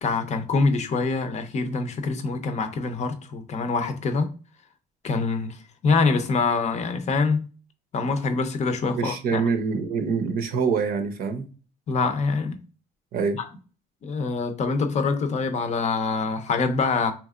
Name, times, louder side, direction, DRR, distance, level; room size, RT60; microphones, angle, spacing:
voice 1, 0.0-4.3 5.0-5.6 5.8-7.5 7.9-9.4 11.9-12.6 13.3-13.4 14.0-17.1, left 4 dB, 45° left, 0.6 m, -25 dB
voice 2, 8.9-11.5 13.1-13.4, right 5 dB, 60° right, 0.6 m, -25 dB
3.5 x 2.9 x 2.4 m
cardioid pair, 110°, 17 cm